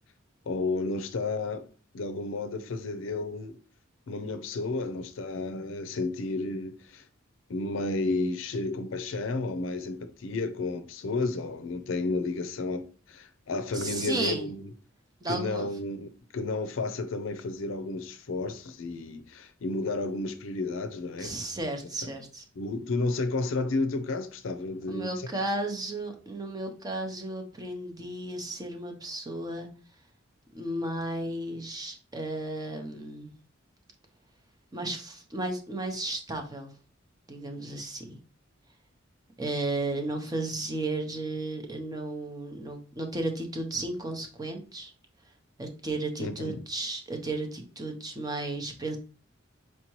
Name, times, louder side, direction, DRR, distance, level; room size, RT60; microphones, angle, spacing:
voice 1, 0.5-1.7 1.9-3.6 4.1-7.1 7.5-14.6 15.3-16.1 16.3-21.3 22.0-22.1 22.6-25.3 46.2-46.5, left 3 dB, 75° left, 0.5 m, -32 dB
voice 2, 13.7-14.4 15.2-15.7 21.2-22.4 24.9-29.7 30.5-33.3 34.7-36.7 37.3-38.2 39.4-44.9 45.6-49.0, right 2 dB, 20° right, 0.7 m, -34 dB
4.5 x 2.8 x 3.0 m
head